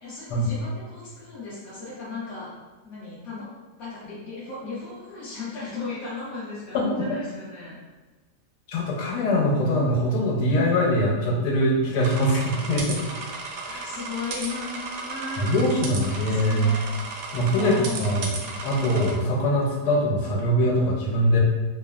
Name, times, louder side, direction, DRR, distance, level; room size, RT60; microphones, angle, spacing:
voice 1, 0.0-2.6 2.8-3.5 3.8-7.8 13.8-16.9 17.5-18.4, left 4 dB, 60° left, -10 dB, 0.7 m, -36 dB
voice 2, 6.7-7.1 8.7-13.0 13.7-13.9 15.4-16.7 17.3-18.3 18.6-21.4, equal, 80° left, -3 dB, 1.2 m, -23 dB
sound 1, 12.0-19.1, right 3 dB, 85° right, 1.2 m, -35 dB
3.1 x 2.0 x 2.3 m, 1.2 s
omnidirectional pair, 1.8 m